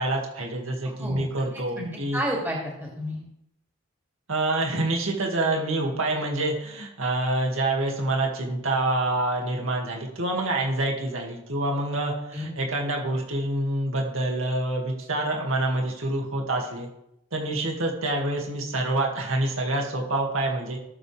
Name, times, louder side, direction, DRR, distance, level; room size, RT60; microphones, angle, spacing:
voice 1, 0.0-2.2 4.3-16.9 17.3-20.8, right 2 dB, 85° right, 0 dB, 2.3 m, -27 dB
voice 2, 0.8-1.3 1.5-3.2 12.3-12.5, equal, 10° right, -4 dB, 2.8 m, -31 dB
18.0 x 7.9 x 3.5 m, 0.81 s
head